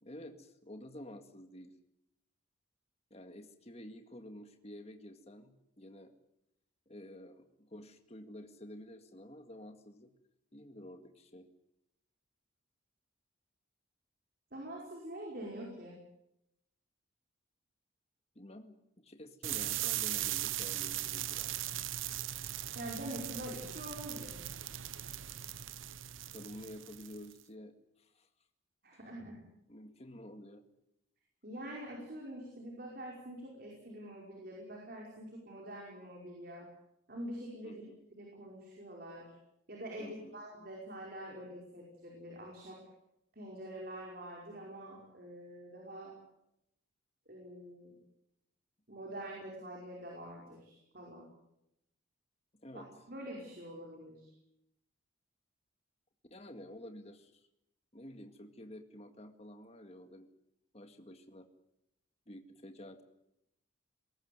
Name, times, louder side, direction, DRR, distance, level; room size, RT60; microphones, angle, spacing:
voice 1, 0.0-1.7 3.1-6.1 6.9-10.1 10.5-11.5 18.4-21.6 26.3-28.3 29.7-30.6 37.6-38.0 40.0-40.3 52.5-52.9 56.3-57.5 57.9-60.3 60.7-61.5 62.3-63.0, left 1 dB, 30° left, 7 dB, 2.0 m, -50 dB
voice 2, 14.5-16.0 22.8-24.4 28.8-29.4 31.4-36.7 37.1-37.8 38.1-39.3 39.7-42.8 43.4-46.1 47.3-48.0 48.9-51.3 52.7-54.3, right 1 dB, 50° right, -1 dB, 5.2 m, -45 dB
sound 1, 19.4-27.3, right 13 dB, 80° right, 0.9 m, -39 dB
21.5 x 18.0 x 9.5 m, 0.82 s
head